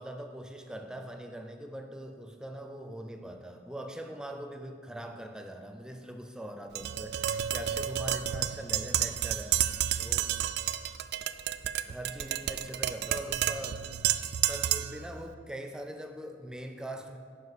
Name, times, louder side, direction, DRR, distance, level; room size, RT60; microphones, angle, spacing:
voice 1, 0.0-10.3 11.9-13.9 14.5-17.2, right 1 dB, 5° right, 5 dB, 0.5 m, -42 dB
Tap, 6.8-15.0, right 11 dB, 65° right, 0.3 m, -31 dB
11.0 x 4.9 x 4.1 m, 2.1 s
head